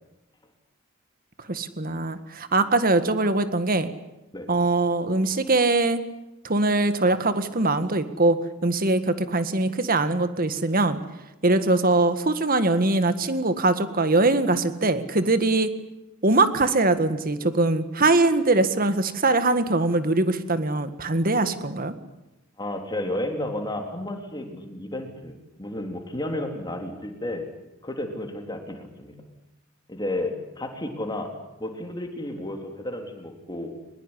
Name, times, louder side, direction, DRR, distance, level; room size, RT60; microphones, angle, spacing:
voice 1, 1.5-3.9 4.5-6.0 6.4-11.0 11.4-15.7 16.2-21.9, right 2 dB, 45° right, 10 dB, 1.8 m, -22 dB
voice 2, 22.6-27.5 27.8-29.2 29.9-31.3 31.6-33.7, left 1 dB, 20° left, 4 dB, 3.6 m, -32 dB
22.0 x 21.0 x 10.0 m, 0.96 s
head